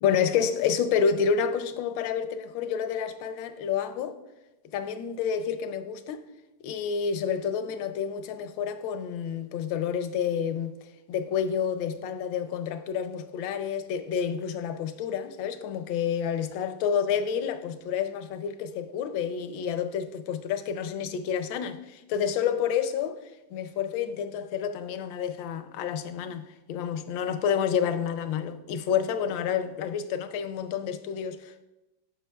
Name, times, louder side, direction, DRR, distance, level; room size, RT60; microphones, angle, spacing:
voice 1, 0.0-4.2 4.7-6.2 6.6-10.7 11.1-23.2 23.5-31.7, left 7 dB, 80° left, 1.3 m, -29 dB
11.5 x 5.5 x 2.3 m
omnidirectional pair, 2.1 m